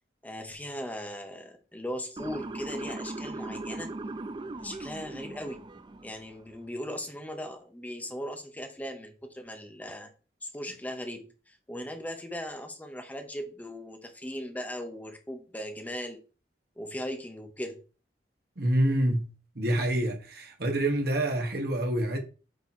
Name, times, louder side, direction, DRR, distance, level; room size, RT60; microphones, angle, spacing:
voice 1, 0.2-3.9 4.6-5.6 6.0-10.1 10.4-16.2 16.8-17.8, equal, 10° left, 0.7 m, -38 dB
Motor vehicle (road) / Siren, 2.2-6.3, right 2 dB, 25° right, 0.4 m, -39 dB
voice 2, 18.6-22.2, right 1 dB, 60° right, 1.3 m, -27 dB
8.2 x 2.9 x 4.3 m
head